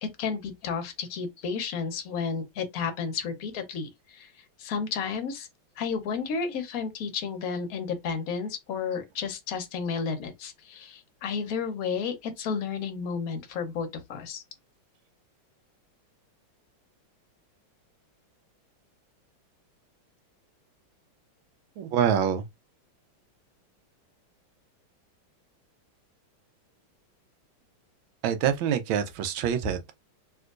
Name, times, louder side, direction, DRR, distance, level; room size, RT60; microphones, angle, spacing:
voice 1, 0.0-4.3 4.6-5.5 5.8-14.4, left 5 dB, 65° left, 0.9 m, -32 dB
voice 2, 21.8-22.5 28.2-29.9, right 8 dB, 80° right, 1.4 m, -26 dB
3.4 x 2.9 x 2.4 m
omnidirectional pair, 2.2 m